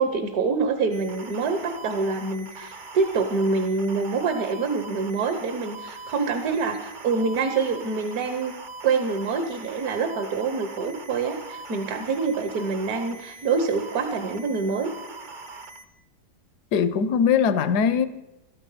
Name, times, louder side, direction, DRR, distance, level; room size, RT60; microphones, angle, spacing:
voice 1, 0.0-8.5 8.8-14.9, right 4 dB, 65° right, 1.5 m, -26 dB
sound 1, 0.9-15.9, right 3 dB, 40° right, 0.7 m, -42 dB
voice 2, 16.7-18.1, left 7 dB, 75° left, 1.3 m, -21 dB
13.5 x 13.0 x 5.7 m
omnidirectional pair, 1.8 m